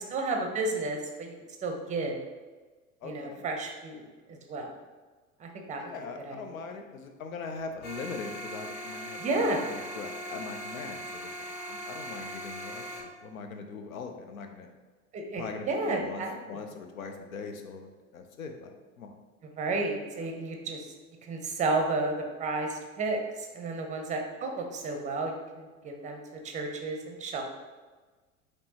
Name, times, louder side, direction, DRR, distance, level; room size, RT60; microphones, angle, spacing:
voice 1, 0.1-1.3 1.6-2.2 3.0-4.8 5.4-5.9 6.2-6.6 9.2-9.6 15.1-16.7 19.4-20.9 21.2-26.2 26.4-27.4, right 2 dB, 15° right, 3 dB, 0.6 m, -32 dB
voice 2, 3.0-3.4 5.8-14.7 15.4-19.1, left 4 dB, 75° left, 5 dB, 0.7 m, -41 dB
sound 1, 7.8-13.0, equal, 50° left, 1.0 m, -40 dB
5.2 x 3.1 x 2.8 m, 1.3 s
figure-of-eight pair, 80°, 42 cm